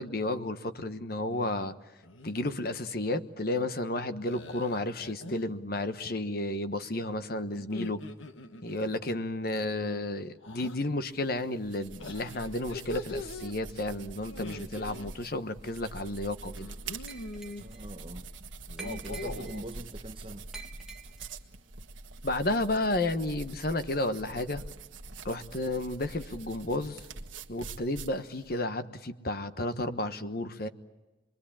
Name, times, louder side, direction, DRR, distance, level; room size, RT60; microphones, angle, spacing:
voice 1, 0.0-1.7 2.2-8.0 8.6-16.7 22.2-24.6 25.2-27.0 27.5-30.7, left 2 dB, 50° left, 1.2 m, -32 dB
sound 1, 1.3-1.7 2.0-2.5 4.3-5.5 7.6-9.0 10.4-10.8 12.0-13.5 14.3-15.1 16.5-17.6 18.6-19.6, left 1 dB, 85° left, 1.4 m, -42 dB
sound 2, 11.1-28.6, right 3 dB, 80° right, 1.5 m, -45 dB
Glass, 17.1-17.9 18.8-19.7 20.5-21.4, right 4 dB, 5° right, 1.5 m, -47 dB
voice 2, 17.6-18.3 18.8-20.5, right 1 dB, 25° right, 0.9 m, -42 dB
26.0 x 22.5 x 8.7 m
head